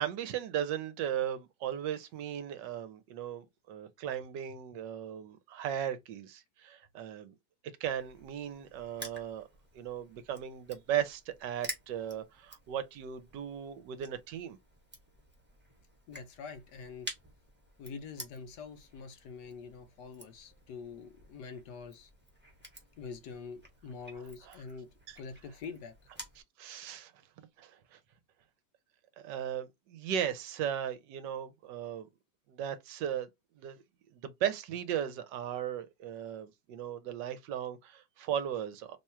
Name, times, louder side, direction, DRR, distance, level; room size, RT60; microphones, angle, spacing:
voice 1, 0.0-7.3 7.8-9.5 9.7-14.6 24.5-24.6 25.1-25.2 26.6-27.1 27.6-28.0 29.2-32.1 32.5-33.3 33.6-33.8 34.1-39.0, right 10 dB, 75° right, 1.2 m, -37 dB
Crushing, 7.9-26.4, right 1 dB, 10° right, 0.8 m, -51 dB
voice 2, 16.1-17.1 17.8-22.1 23.0-24.9 25.2-25.9, left 5 dB, 75° left, 1.1 m, -45 dB
3.0 x 2.3 x 4.2 m
omnidirectional pair, 2.0 m